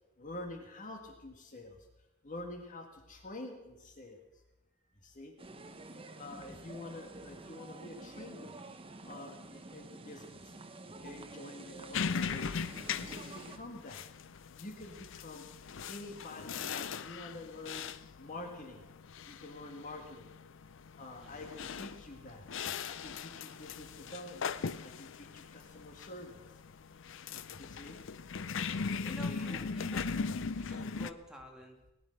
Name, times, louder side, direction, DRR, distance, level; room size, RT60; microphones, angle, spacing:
voice 1, 0.2-1.8 2.2-4.2 5.0-5.3 6.2-8.5 9.0-10.4 11.0-12.6 13.0-14.0 14.6-15.4 15.9-17.9 18.2-18.8 19.3-20.3 21.0-22.5 22.8-24.5 24.8-26.4 27.5-28.0 28.8-29.6, left 2 dB, 40° left, 4 dB, 1.7 m, -47 dB
sound 1, 5.4-13.6, right 2 dB, 25° right, 0.9 m, -49 dB
sound 2, 11.9-31.1, left 5 dB, 65° left, 0.6 m, -39 dB
voice 2, 21.2-21.5 23.1-24.2 28.4-28.6 29.0-31.8, equal, 5° right, 0 dB, 2.3 m, -52 dB
19.0 x 10.5 x 6.5 m, 0.97 s
head